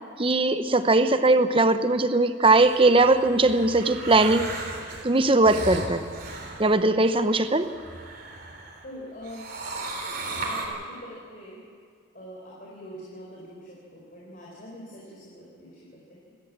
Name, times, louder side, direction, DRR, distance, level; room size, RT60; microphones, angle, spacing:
voice 1, 0.2-4.5 5.0-6.0 6.6-7.7, right 2 dB, 25° right, 10 dB, 0.8 m, -20 dB
sound 1, 2.5-8.8 9.2-10.7, right 2 dB, 45° right, 3.5 m, -36 dB
voice 2, 8.8-9.5 10.3-11.6 12.1-16.3, equal, 40° left, -4 dB, 4.4 m, -44 dB
28.5 x 13.0 x 7.4 m, 2.2 s
head